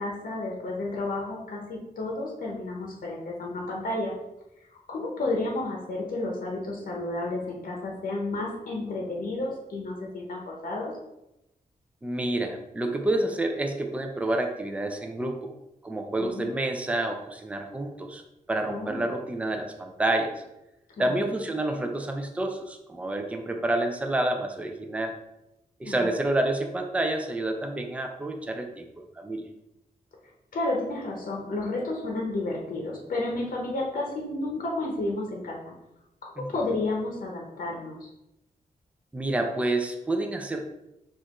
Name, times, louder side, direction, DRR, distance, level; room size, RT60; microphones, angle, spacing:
voice 1, 0.0-4.1 4.9-10.9 16.2-16.5 18.7-19.0 21.0-21.2 25.8-26.1 30.5-35.6 36.2-38.0, left 2 dB, 65° left, -1 dB, 0.8 m, -31 dB
voice 2, 12.0-15.5 15.8-18.2 18.5-20.4 21.0-25.1 25.8-29.5 36.4-36.5 39.1-40.6, right 1 dB, 10° right, 4 dB, 0.4 m, -29 dB
6.4 x 2.5 x 3.0 m, 0.91 s
wide cardioid pair, 155°, 15 cm